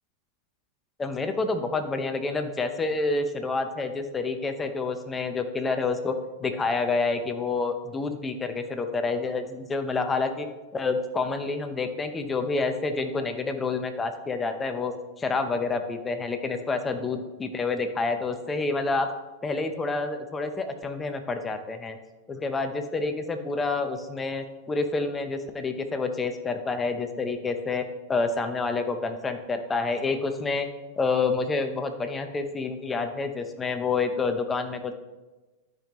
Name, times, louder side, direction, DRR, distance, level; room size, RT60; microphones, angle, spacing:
voice 1, 1.0-10.5 10.7-19.1 19.4-22.0 22.3-30.7 31.0-34.9, left 3 dB, 15° left, 7 dB, 0.8 m, -28 dB
12.0 x 5.3 x 3.1 m, 1.2 s
hypercardioid pair, 125°, 0 cm